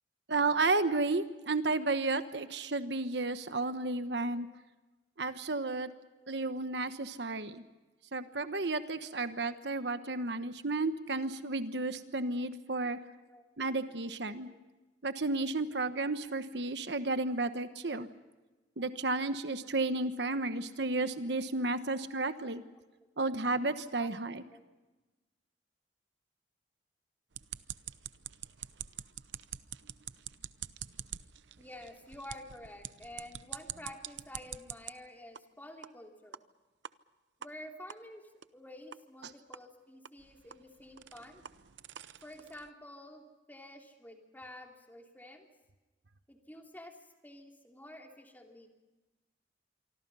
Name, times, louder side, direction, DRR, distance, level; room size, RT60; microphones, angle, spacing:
voice 1, 0.3-4.5 5.2-5.9 6.3-7.6 8.1-13.0 13.6-14.5 15.0-18.1 18.8-22.6 23.2-24.4, right 3 dB, 70° right, 10 dB, 1.2 m, -32 dB
voice 2, 21.5-21.9 22.7-23.1 24.0-24.1 24.5-24.6 31.6-36.4 37.4-41.4 42.2-45.5 46.3-48.7, left 1 dB, 10° left, 2 dB, 3.1 m, -50 dB
sound 1, 27.3-34.9 35.4-35.5 35.8-35.9 36.3-36.4 36.8-36.9 37.4-37.5 37.9-38.0 38.4-38.5 38.9-39.0 39.5-39.6 40.1-42.7, right 10 dB, 90° right, 0.8 m, -46 dB
27.0 x 24.5 x 5.6 m, 1.2 s
head